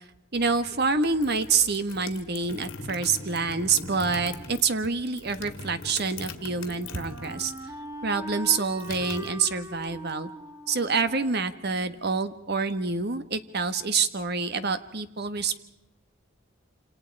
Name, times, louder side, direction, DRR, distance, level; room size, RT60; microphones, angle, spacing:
voice 1, 0.3-7.5 8.0-10.3 10.7-15.6, right 4 dB, 55° right, 10 dB, 1.4 m, -27 dB
sound 1, 1.0-7.7 8.0-9.9, left 3 dB, 75° left, 2.2 m, -41 dB
Wind instrument woodwind instrument, 5.9-12.7, right 1 dB, 15° right, 2.3 m, -42 dB
27.5 x 27.5 x 4.8 m, 0.86 s
head